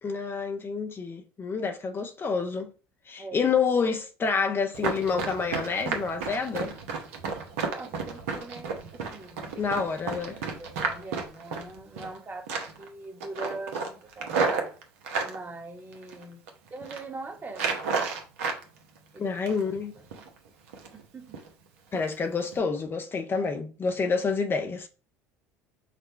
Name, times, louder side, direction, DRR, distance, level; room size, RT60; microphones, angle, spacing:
voice 1, 0.0-2.7 3.1-6.7 9.6-10.4 19.2-19.9 21.9-24.9, left 5 dB, 30° left, 0.5 m, -28 dB
voice 2, 3.2-3.5 7.6-9.9 10.2-14.7 15.2-16.4 16.7-17.9 19.1-19.4 19.6-20.3 20.9-21.4, right 2 dB, 25° right, 1.1 m, -42 dB
Run, 4.7-12.2 12.5-12.9 13.2-15.3 15.9-16.5 16.8-17.0 17.5-18.6 19.0-19.8 20.1-20.3 20.7-21.0 21.3-21.5 21.9-22.1 22.5-22.6, right 4 dB, 80° right, 0.8 m, -32 dB
4.9 x 2.2 x 4.3 m
hypercardioid pair, 70°, 7 cm